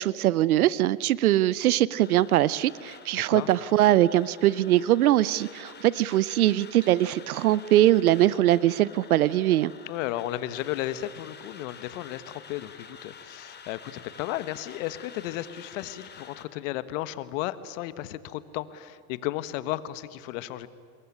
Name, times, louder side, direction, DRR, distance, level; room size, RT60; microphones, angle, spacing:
voice 1, 0.0-9.7, right 14 dB, 90° right, 20 dB, 0.7 m, -22 dB
sound 1, 2.0-16.4, left 6 dB, 25° left, 2.7 m, -49 dB
voice 2, 3.1-3.5 9.9-20.7, left 14 dB, 65° left, 14 dB, 1.5 m, -34 dB
26.0 x 22.0 x 9.8 m, 2.2 s
hypercardioid pair, 105°, 42 cm